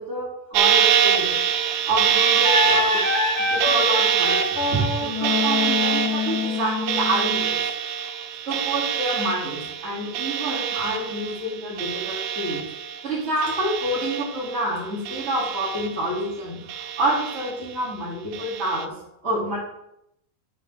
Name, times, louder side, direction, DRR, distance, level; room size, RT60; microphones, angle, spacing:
voice 1, 0.0-1.4 1.9-3.0 3.5-7.6 8.5-12.6 13.0-18.9 19.2-19.6, right 1 dB, 20° right, -8 dB, 4.2 m, -28 dB
sound 1, 0.5-13.1 13.4-14.6 15.0-16.3 16.7-17.7 18.3-18.8, right 8 dB, 90° right, 1.3 m, -25 dB
Wind instrument woodwind instrument, 2.1-7.5, left 4 dB, 45° left, 2.9 m, -25 dB
7.9 x 5.8 x 6.9 m, 0.80 s
omnidirectional pair, 3.5 m